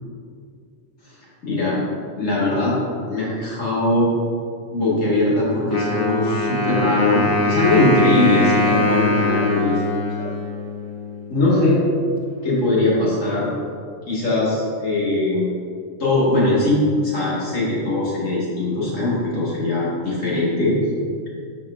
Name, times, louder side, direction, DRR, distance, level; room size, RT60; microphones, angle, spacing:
voice 1, 1.4-1.8 2.2-2.7 3.1-4.1 4.7-9.8 10.1-10.3 11.3-11.8 12.4-13.5 14.1-15.5 16.0-20.8, left 2 dB, 70° left, -7 dB, 2.2 m, -20 dB
Wind instrument woodwind instrument, 5.7-11.3, left 2 dB, 25° left, 0.5 m, -22 dB
11.0 x 4.7 x 2.5 m, 2.3 s
omnidirectional pair, 1.3 m